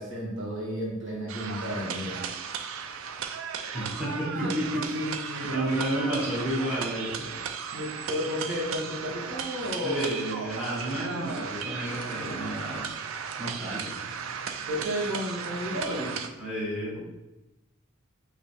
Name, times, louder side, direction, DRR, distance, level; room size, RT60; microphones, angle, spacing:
voice 1, 0.0-2.2 4.2-5.9 7.7-10.1 14.7-16.2, equal, 65° right, -4 dB, 1.4 m, -32 dB
sound 1, 1.3-16.3, right 6 dB, 85° right, 0.4 m, -36 dB
voice 2, 3.7-4.9 5.3-7.4 9.8-12.8 13.4-14.0 16.4-17.0, equal, 5° right, -7 dB, 1.3 m, -32 dB
5.3 x 3.0 x 3.3 m, 1.0 s
head